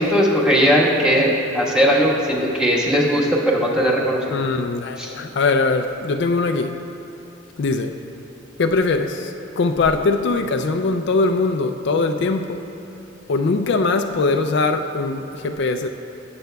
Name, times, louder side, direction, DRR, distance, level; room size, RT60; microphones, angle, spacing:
voice 1, 0.0-4.4 5.0-5.1, equal, 5° right, -5 dB, 1.4 m, -18 dB
voice 2, 4.3-6.8 7.6-7.9 8.6-12.6 13.3-15.9, left 3 dB, 65° left, 6 dB, 0.4 m, -21 dB
20.0 x 7.7 x 2.3 m, 2.8 s
head